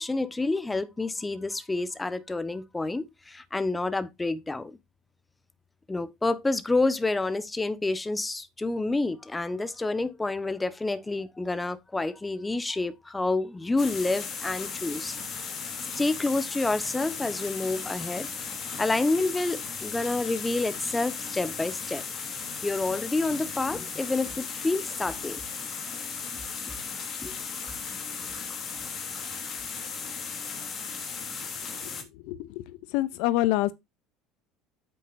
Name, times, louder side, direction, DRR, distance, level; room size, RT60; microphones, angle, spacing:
voice 1, 0.0-4.8 5.9-15.2 16.0-18.3 18.8-22.0 22.6-25.4 26.4-26.5 27.2-27.3, left 2 dB, 15° left, 1.2 m, -28 dB
sound 1, 13.8-32.0, left 5 dB, 40° left, 2.7 m, -36 dB
voice 2, 32.3-32.6 32.9-33.7, left 16 dB, 65° left, 0.5 m, -26 dB
9.2 x 8.6 x 2.6 m
hypercardioid pair, 65°, 0 cm